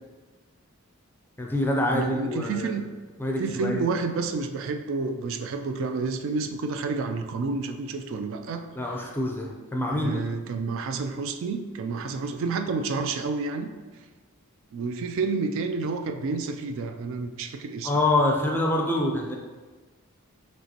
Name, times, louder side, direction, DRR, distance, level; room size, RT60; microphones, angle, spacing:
voice 1, 1.4-2.8 3.2-3.9 8.8-10.2 17.8-19.4, left 1 dB, 10° left, -1 dB, 0.4 m, -26 dB
voice 2, 1.9-2.9 3.4-8.7 9.9-13.7 14.7-17.9, right 4 dB, 60° right, 6 dB, 0.3 m, -29 dB
5.3 x 2.9 x 2.8 m, 1.3 s
head